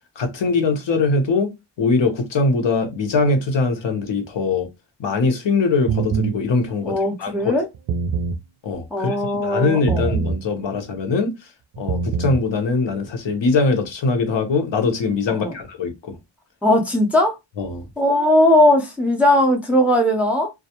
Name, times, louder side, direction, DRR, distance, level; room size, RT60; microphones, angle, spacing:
voice 1, 0.2-1.5 1.8-4.7 5.0-6.9 7.2-7.5 8.6-9.2 9.4-11.3 11.8-16.2 17.6-17.9, left 3 dB, 70° left, 0.8 m, -21 dB
sound 1, 5.9-6.4 7.7-8.4 9.9-10.4 11.7-12.4, right 5 dB, 65° right, 0.5 m, -23 dB
voice 2, 6.8-7.7 8.9-10.2 15.3-15.6 16.6-17.4 18.0-20.5, left 1 dB, 5° right, 0.5 m, -18 dB
2.3 x 2.1 x 2.8 m
wide cardioid pair, 100°, 45 cm